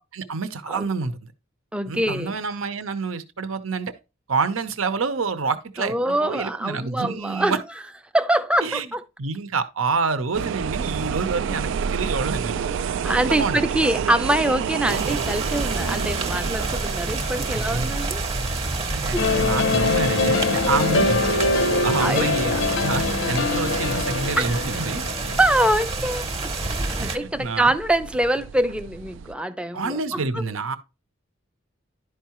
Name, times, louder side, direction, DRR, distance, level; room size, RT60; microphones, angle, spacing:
voice 1, 0.1-1.3 1.9-3.9 4.3-7.6 8.6-8.9 9.2-12.6 13.1-13.6 17.5-17.9 18.9-21.4 21.8-25.4 27.0-27.7 29.7-30.8, right 4 dB, 80° right, 0.8 m, -27 dB
voice 2, 1.7-2.4 5.8-7.6 8.1-9.0 11.4-11.6 13.0-18.2 19.1-19.3 20.9-21.1 22.0-22.6 24.4-25.0 25.4-26.2 26.6-30.4, right 1 dB, 5° right, 0.5 m, -24 dB
sound 1, 10.3-29.3, right 7 dB, 65° right, 0.3 m, -32 dB
sound 2, 14.9-27.2, right 3 dB, 30° right, 0.9 m, -28 dB
sound 3, 19.2-25.4, left 3 dB, 65° left, 0.6 m, -23 dB
11.0 x 4.7 x 3.0 m
head